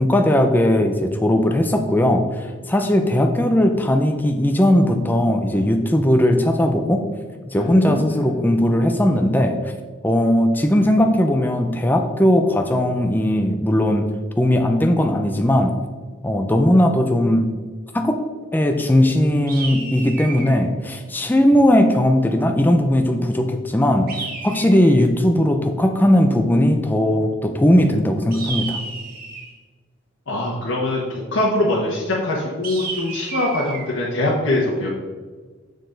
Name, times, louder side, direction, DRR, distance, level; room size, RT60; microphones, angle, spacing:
voice 1, 0.0-7.0 7.5-9.6 10.0-14.1 14.4-15.7 16.2-17.5 17.9-18.2 18.5-28.8, left 1 dB, 10° left, 5 dB, 0.4 m, -18 dB
voice 2, 7.5-8.2 30.3-34.9, left 1 dB, 85° left, -5 dB, 1.2 m, -23 dB
sound 1, 19.5-20.6 24.1-25.1 28.3-29.6 32.6-33.9, right 4 dB, 45° right, 1.2 m, -32 dB
6.6 x 6.3 x 3.9 m, 1.4 s
head